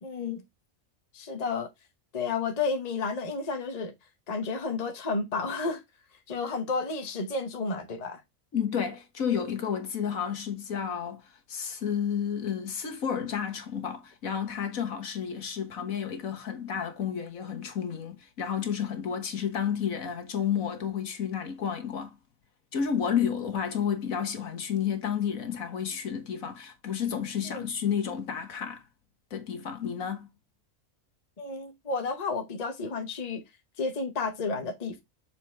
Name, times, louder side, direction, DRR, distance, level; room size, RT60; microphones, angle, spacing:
voice 1, 0.0-0.4 1.1-1.7 2.1-3.9 4.3-5.8 6.3-8.2 27.5-27.6 31.4-33.4 33.8-35.0, left 4 dB, 35° left, 1.0 m, -31 dB
voice 2, 8.5-22.2 22.7-28.8 29.3-30.3, left 8 dB, 75° left, 1.7 m, -31 dB
6.8 x 4.5 x 3.5 m
omnidirectional pair, 1.4 m